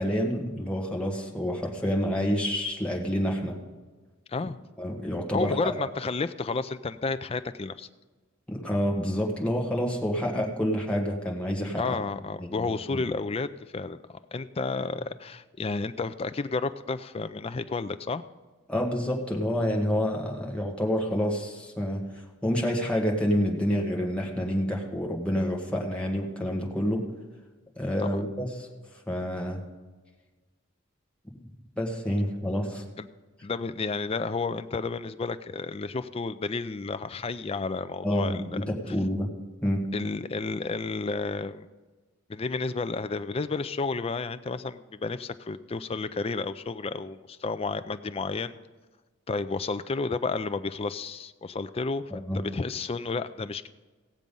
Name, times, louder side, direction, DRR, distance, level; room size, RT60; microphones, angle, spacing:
voice 1, 0.0-3.6 4.8-5.6 8.5-12.0 12.6-13.0 18.7-22.0 22.4-27.0 27.8-28.7 29.1-29.6 31.8-32.8 38.0-39.3 39.6-39.8 52.1-52.4, equal, 5° left, -1 dB, 1.5 m, -28 dB
voice 2, 5.3-7.9 11.8-14.0 14.3-18.2 28.0-28.2 33.0-33.1 33.4-38.6 38.9-39.0 39.9-41.7 42.3-48.5 49.3-53.7, left 4 dB, 25° left, 12 dB, 0.4 m, -31 dB
17.0 x 7.4 x 5.3 m, 1.3 s
head